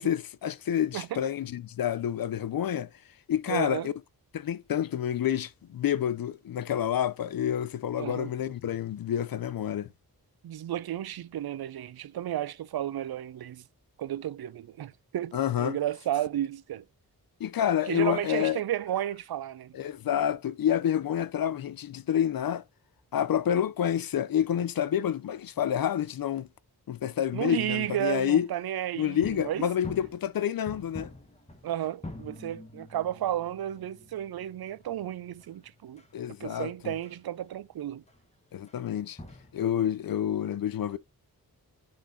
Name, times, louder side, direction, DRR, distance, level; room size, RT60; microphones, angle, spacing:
voice 1, 0.0-2.9 3.3-3.9 4.3-9.9 15.3-15.8 17.4-18.6 19.7-22.6 23.1-26.5 26.9-28.5 29.0-31.1 36.1-36.9 38.5-39.2 39.5-41.0, left 10 dB, 65° left, 0.5 m, -28 dB
voice 2, 3.5-3.9 8.0-8.3 10.4-13.6 14.0-16.8 17.9-19.8 27.3-29.7 31.6-36.0 36.4-38.0, right 12 dB, 75° right, 0.5 m, -33 dB
sound 1, 29.1-37.2 37.5-37.6 38.1-38.2 38.7-38.8 39.1-39.6, left 1 dB, 15° left, 1.3 m, -46 dB
10.5 x 3.8 x 2.6 m
wide cardioid pair, 95°, 38 cm